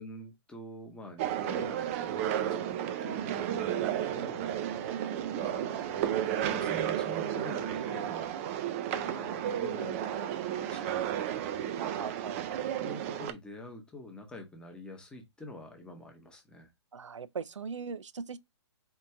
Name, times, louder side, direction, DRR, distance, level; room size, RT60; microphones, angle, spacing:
voice 1, 0.0-4.5 5.3-6.2 6.5-8.4 8.9-11.6 12.8-16.7, left 1 dB, 5° left, 0.8 m, -46 dB
sound 1, 1.2-13.3, right 10 dB, 30° right, 0.4 m, -33 dB
voice 2, 11.8-12.6 16.9-18.4, right 5 dB, 90° right, 0.4 m, -40 dB
4.5 x 2.5 x 3.3 m
hypercardioid pair, 135°, 15 cm